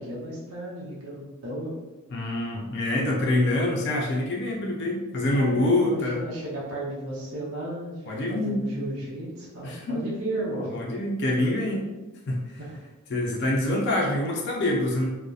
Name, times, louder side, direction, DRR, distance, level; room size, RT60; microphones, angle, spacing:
voice 1, 0.0-1.7 5.3-10.7 12.6-12.8, right 1 dB, 75° right, -5 dB, 0.6 m, -34 dB
voice 2, 2.1-6.2 8.1-8.6 9.6-10.0 10.7-11.8 12.3-12.6 13.1-15.1, left 1 dB, 50° left, -1 dB, 0.4 m, -25 dB
2.6 x 2.1 x 2.3 m, 1.1 s
head